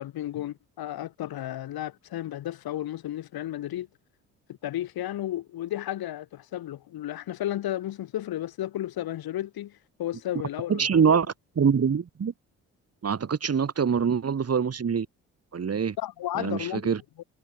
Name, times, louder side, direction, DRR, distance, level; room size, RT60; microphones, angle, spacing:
voice 1, 0.0-3.9 4.6-11.2 16.0-17.2, left 13 dB, 60° left, 1.7 m, -33 dB
voice 2, 10.7-11.3 11.6-12.3 13.0-15.1 15.5-16.0 16.4-17.0, right 6 dB, 35° right, 2.0 m, -24 dB
hypercardioid pair, 45°, 42 cm